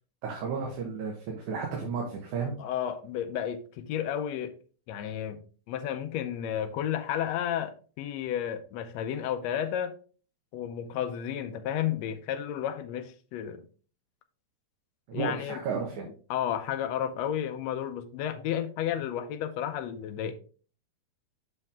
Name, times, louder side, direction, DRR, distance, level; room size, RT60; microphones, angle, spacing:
voice 1, 0.2-2.5 15.1-16.0, right 5 dB, 70° right, 2.6 m, -33 dB
voice 2, 2.6-4.5 4.9-5.4 5.7-9.9 10.5-13.6 15.1-15.6 16.3-20.3, left 10 dB, 80° left, 1.6 m, -32 dB
7.3 x 5.4 x 3.5 m
omnidirectional pair, 3.6 m